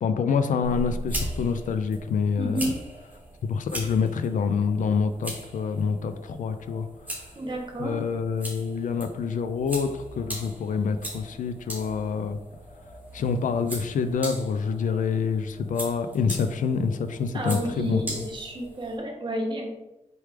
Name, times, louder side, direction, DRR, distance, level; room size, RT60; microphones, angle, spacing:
voice 1, 0.0-2.7 3.4-6.9 7.8-12.4 13.1-18.2, left 5 dB, 90° left, 9 dB, 0.4 m, -27 dB
sound 1, 0.6-19.0, right 1 dB, 15° right, 1.2 m, -39 dB
voice 2, 2.4-2.8 7.4-7.9 17.3-19.7, right 1 dB, 40° right, 0 dB, 1.0 m, -30 dB
4.5 x 3.2 x 3.4 m, 0.95 s
wide cardioid pair, 115°, 13 cm